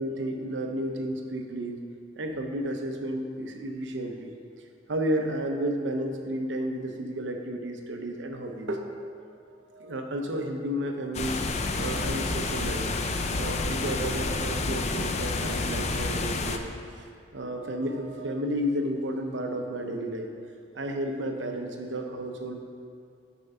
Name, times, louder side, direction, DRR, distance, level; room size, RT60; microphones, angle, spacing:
voice 1, 0.0-1.8 2.2-4.4 4.9-9.2 9.7-12.9 13.3-16.7 17.0-17.1 17.3-20.3 20.7-22.6, right 1 dB, 85° right, 3 dB, 0.8 m, -32 dB
sound 1, 11.1-16.6, left 3 dB, 40° left, 0.5 m, -29 dB
8.6 x 4.5 x 5.5 m, 2.3 s
head